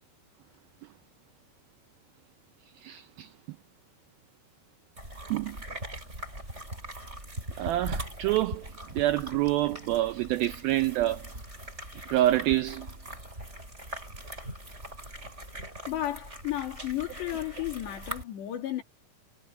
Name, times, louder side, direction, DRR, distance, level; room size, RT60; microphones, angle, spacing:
voice 1, 2.8-3.3 5.3-5.6 7.6-8.7 8.9-11.3 12.1-12.9, right 15 dB, 85° right, 2.1 m, -27 dB
sound 1, 5.0-18.2, right 1 dB, 15° right, 8.1 m, -41 dB
voice 2, 15.9-18.8, left 13 dB, 80° left, 5.1 m, -33 dB
omnidirectional pair, 5.0 m